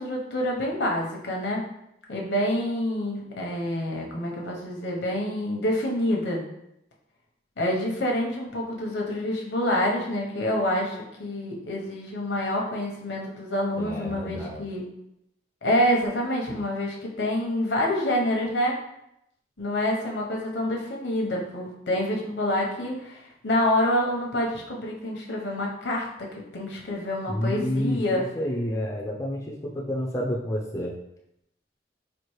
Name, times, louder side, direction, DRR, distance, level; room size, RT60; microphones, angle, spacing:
voice 1, 0.0-1.6 2.1-6.4 7.6-14.8 15.6-18.7 19.6-26.3 26.5-28.2, left 1 dB, 75° left, -1 dB, 0.8 m, -27 dB
voice 2, 13.8-14.6 27.3-30.9, equal, 15° left, -2 dB, 0.4 m, -29 dB
4.4 x 2.5 x 3.1 m, 0.81 s
head